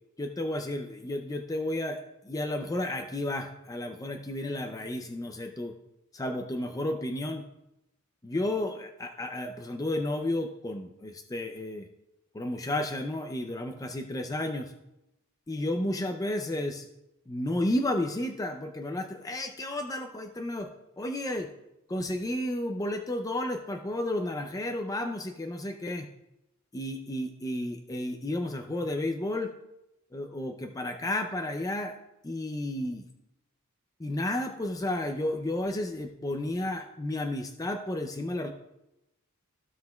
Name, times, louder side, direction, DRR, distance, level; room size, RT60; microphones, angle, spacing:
voice 1, 0.2-2.0 2.2-5.7 6.1-7.4 8.2-11.9 12.3-14.7 15.5-16.9 17.3-20.7 21.0-21.5 21.9-26.1 26.7-29.5 30.1-32.0 32.2-33.1 34.0-38.5, left 1 dB, 15° left, 4 dB, 0.5 m, -32 dB
15.0 x 5.7 x 2.3 m, 0.89 s
head